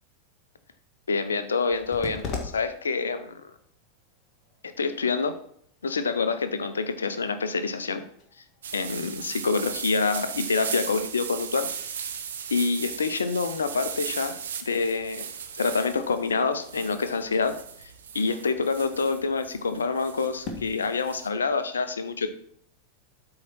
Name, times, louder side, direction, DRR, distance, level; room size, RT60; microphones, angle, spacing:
voice 1, 1.1-3.5 4.8-5.4 5.8-8.0 8.7-11.7 12.5-14.3 14.7-15.3 15.5-17.5 18.1-22.3, left 4 dB, 70° left, 10 dB, 0.7 m, -27 dB
sound 1, 1.6-20.7, left 4 dB, 35° left, 1.7 m, -46 dB
sound 2, 8.6-21.3, right 7 dB, 65° right, 0.8 m, -37 dB
8.5 x 3.9 x 6.1 m, 0.67 s
figure-of-eight pair, 90°, 0 cm